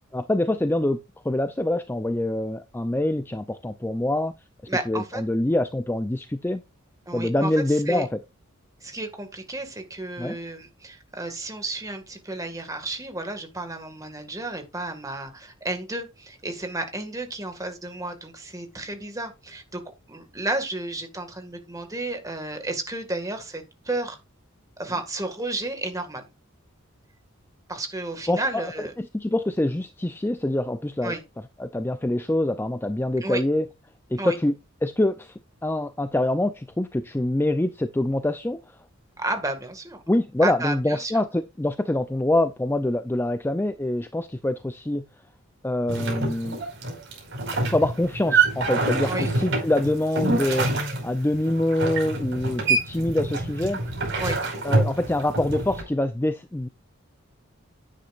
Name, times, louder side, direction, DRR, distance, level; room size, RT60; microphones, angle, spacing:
voice 1, 0.1-1.0 1.2-4.3 4.9-6.6 7.1-8.2 10.2-10.4 28.3-28.6 29.0-31.1 31.6-33.7 34.1-34.5 34.8-35.3 35.6-38.6 40.1-45.1 45.6-46.6 47.7-50.7 51.0-53.8 54.6-56.7, left 1 dB, 10° left, 0.4 m, -25 dB
voice 2, 4.7-5.2 7.1-8.1 8.8-19.8 20.1-24.2 24.8-26.2 27.7-28.9 31.0-31.2 33.2-33.4 34.2-34.4 39.2-40.0 40.4-41.1 49.0-49.3 54.2-54.4, right 2 dB, 15° right, 1.9 m, -32 dB
sound 1, 45.9-55.8, right 3 dB, 60° right, 5.1 m, -26 dB
10.0 x 9.4 x 2.5 m
head